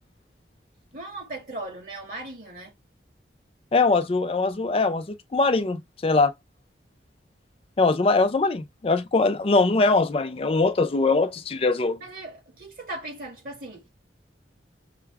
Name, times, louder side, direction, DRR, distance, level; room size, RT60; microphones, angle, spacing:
voice 1, 0.9-2.7 12.0-14.0, right 2 dB, 50° right, 1.9 m, -38 dB
voice 2, 3.7-6.3 7.8-12.0, left 3 dB, 30° left, 0.4 m, -22 dB
5.6 x 2.2 x 3.4 m
head